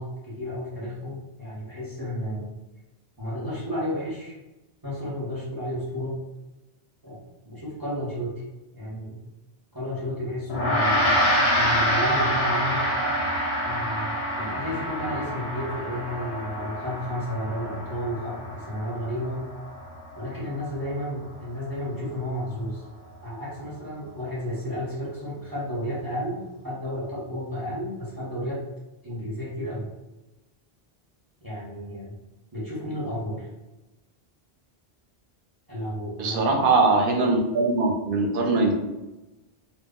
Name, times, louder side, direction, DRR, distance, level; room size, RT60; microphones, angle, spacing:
voice 1, 0.0-2.5 3.2-4.3 4.8-6.2 7.0-7.2 7.5-8.3 8.7-9.2 9.7-12.8 13.6-19.4 20.2-22.8 23.2-28.6 29.0-29.9 31.4-32.1 32.5-33.5 35.7-36.5, equal, 25° right, -6 dB, 0.6 m, -32 dB
Gong, 10.5-20.1, equal, 85° left, 0.8 m, -26 dB
voice 2, 36.2-38.7, right 3 dB, 65° right, 1 dB, 0.7 m, -21 dB
2.2 x 2.0 x 3.5 m, 1.0 s
omnidirectional pair, 1.0 m